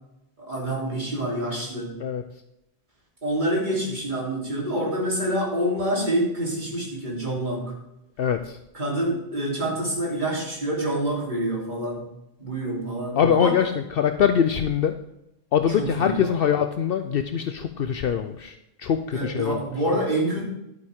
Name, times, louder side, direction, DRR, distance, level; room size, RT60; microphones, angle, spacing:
voice 1, 0.4-1.9 3.2-7.7 8.7-12.1 12.4-13.6 15.8-16.5 19.1-20.4, right 1 dB, 50° right, -3 dB, 3.4 m, -27 dB
voice 2, 8.2-8.6 13.2-14.9 15.5-19.6, left 8 dB, 65° left, 8 dB, 0.8 m, -23 dB
11.0 x 9.3 x 3.6 m, 0.87 s
omnidirectional pair, 1.0 m